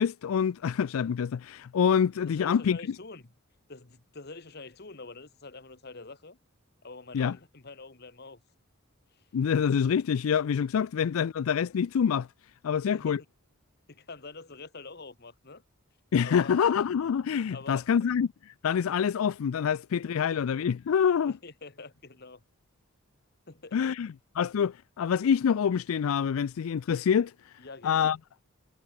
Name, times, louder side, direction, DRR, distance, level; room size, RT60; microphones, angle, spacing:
voice 1, 0.0-2.8 7.1-7.4 9.3-12.3 12.6-13.2 16.1-21.4 23.7-27.5 27.8-28.2, left 7 dB, 85° left, 0.4 m, -26 dB
voice 2, 2.3-3.3 3.7-6.4 6.8-8.4 9.1-9.2 12.7-13.2 13.9-15.6 16.2-16.5 17.5-17.9 20.3-20.4 21.3-22.4 23.5-23.9 27.6-28.1, left 3 dB, 50° left, 1.5 m, -46 dB
head